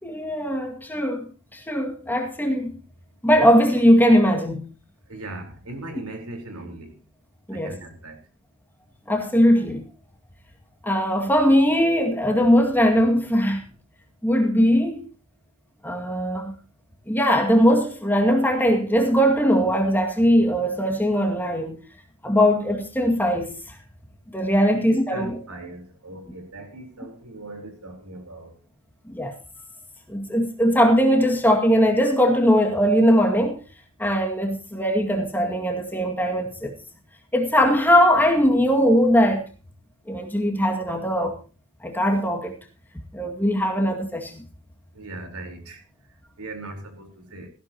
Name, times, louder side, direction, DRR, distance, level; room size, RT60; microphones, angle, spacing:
voice 1, 0.0-2.8 3.2-4.6 7.5-7.7 9.1-9.8 10.8-13.6 14.2-15.1 15.8-16.6 17.1-21.8 22.2-23.8 24.3-25.3 29.1-29.3 30.1-33.6 34.0-36.7 37.3-39.4 40.1-41.3 41.8-42.6 43.1-44.4, equal, 10° left, 2.2 m, -20 dB
voice 2, 5.1-7.0 7.5-8.2 24.7-28.5 44.9-45.8 46.4-47.5, right 2 dB, 80° right, 4.3 m, -38 dB
18.5 x 15.0 x 3.0 m
head